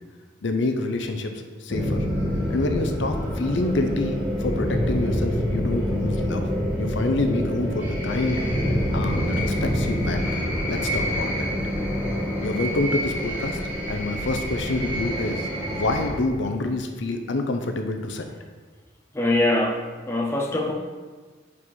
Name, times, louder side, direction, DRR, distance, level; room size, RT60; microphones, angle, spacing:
voice 1, 0.4-1.3 1.6-2.0 2.5-6.5 6.8-8.4 8.9-11.5 12.4-13.6 13.9-18.3, left 2 dB, 65° left, 5 dB, 0.6 m, -27 dB
sound 1, 1.7-16.1, equal, 10° right, 1.8 m, -26 dB
voice 2, 19.1-20.7, left 2 dB, 15° left, -1 dB, 0.7 m, -23 dB
4.9 x 4.8 x 5.4 m, 1.4 s
head